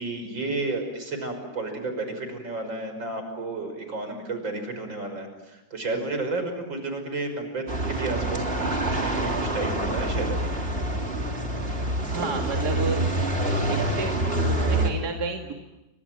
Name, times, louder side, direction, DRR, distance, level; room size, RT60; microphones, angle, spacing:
voice 1, 0.0-10.7, right 2 dB, 80° right, 6 dB, 6.5 m, -32 dB
sound 1, 7.7-14.9, right 1 dB, 30° right, 3.7 m, -26 dB
voice 2, 12.1-13.1 13.7-14.1 14.5-15.5, right 3 dB, 60° right, 2 dB, 2.7 m, -31 dB
30.0 x 25.5 x 7.4 m, 0.99 s
omnidirectional pair, 2.0 m